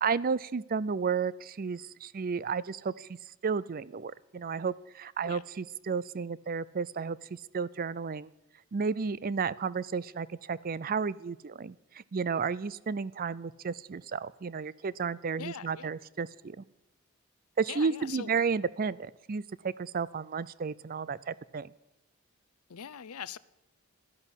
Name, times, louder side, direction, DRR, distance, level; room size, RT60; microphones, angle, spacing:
voice 1, 0.0-3.1 3.4-8.3 8.7-16.6 17.6-21.7, right 5 dB, 40° right, 0.5 m, -32 dB
voice 2, 15.4-15.9 17.7-18.3 22.7-23.4, left 8 dB, 85° left, 0.6 m, -42 dB
13.0 x 11.0 x 8.2 m
head